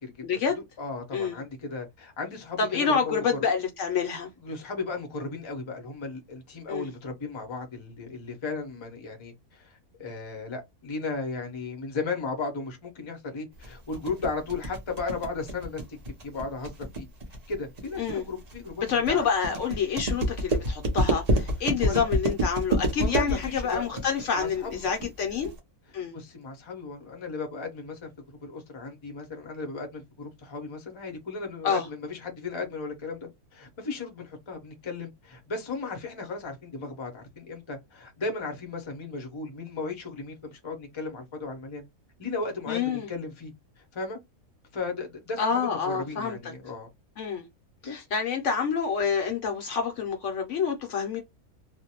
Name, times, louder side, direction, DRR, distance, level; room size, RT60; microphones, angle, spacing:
voice 1, 0.2-0.6 1.1-1.4 2.6-4.3 6.7-6.9 18.0-18.3 18.9-25.5 25.9-26.2 31.6-31.9 42.7-43.1 45.4-46.5 47.2-47.4 47.8-51.2, left 6 dB, 65° left, 0.8 m, -27 dB
voice 2, 0.8-3.4 4.4-15.8 16.2-17.1 17.5-19.3 21.8-22.1 23.0-24.0 24.3-25.1 26.1-28.1 28.4-41.8 42.2-44.2 44.7-46.9 47.8-48.1, left 3 dB, 30° left, 0.6 m, -35 dB
sound 1, 13.6-25.6, right 1 dB, 45° right, 0.5 m, -29 dB
2.5 x 2.1 x 2.8 m
omnidirectional pair, 1.5 m